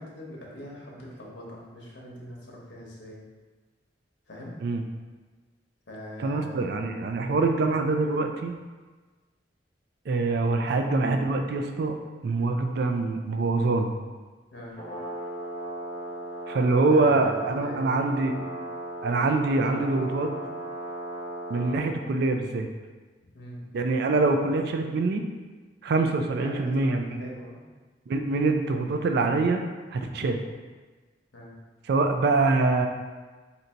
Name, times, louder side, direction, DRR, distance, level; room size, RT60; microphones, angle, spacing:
voice 1, 0.0-3.2 4.3-4.6 5.9-6.8 14.5-14.7 16.9-17.9 23.3-23.6 26.4-27.6 30.1-30.3 31.3-31.5, left 1 dB, 90° left, -3 dB, 0.8 m, -42 dB
voice 2, 6.2-8.5 10.1-12.0 12.2-13.9 16.5-18.4 19.0-20.3 21.5-22.7 23.7-25.2 25.8-27.3 28.1-29.6 29.9-30.4 31.9-32.9, right 3 dB, 60° right, 5 dB, 0.3 m, -24 dB
Brass instrument, 14.7-21.9, right 1 dB, 25° left, 0.8 m, -37 dB
2.8 x 2.6 x 4.3 m, 1.4 s
head